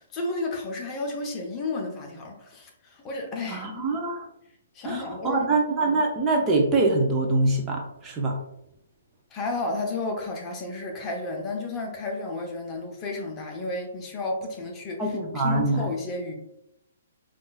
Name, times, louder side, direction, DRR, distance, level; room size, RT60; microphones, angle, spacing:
voice 1, 0.0-3.7 4.7-5.5 9.3-16.3, left 2 dB, 25° left, 1 dB, 0.8 m, -32 dB
voice 2, 3.5-4.2 4.8-8.4 15.0-15.9, right 2 dB, 20° right, 0 dB, 0.6 m, -24 dB
5.4 x 2.5 x 2.3 m, 0.80 s
figure-of-eight pair, 125°, 0 cm